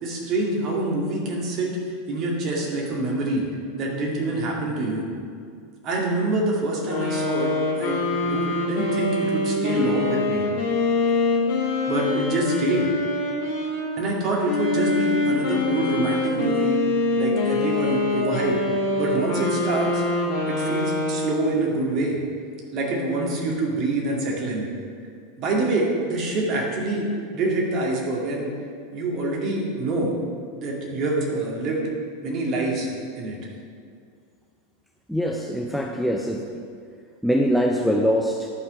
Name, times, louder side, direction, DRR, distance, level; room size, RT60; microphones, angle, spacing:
voice 1, 0.0-1.7 2.1-3.4 3.8-5.0 5.8-10.4 11.9-12.9 14.0-16.8 17.2-18.6 19.0-20.0 20.5-22.2 22.7-24.7 25.4-27.1 27.3-28.5 28.9-30.1 30.6-31.9 32.2-33.4, right 2 dB, 40° right, -2 dB, 2.2 m, -26 dB
sound 1, 6.8-13.9 14.4-21.6, left 2 dB, 50° left, 2.4 m, -24 dB
voice 2, 35.1-36.4 37.2-38.5, equal, ahead, 0 dB, 0.6 m, -23 dB
11.0 x 5.8 x 5.3 m, 2.2 s
figure-of-eight pair, 85°, 0 cm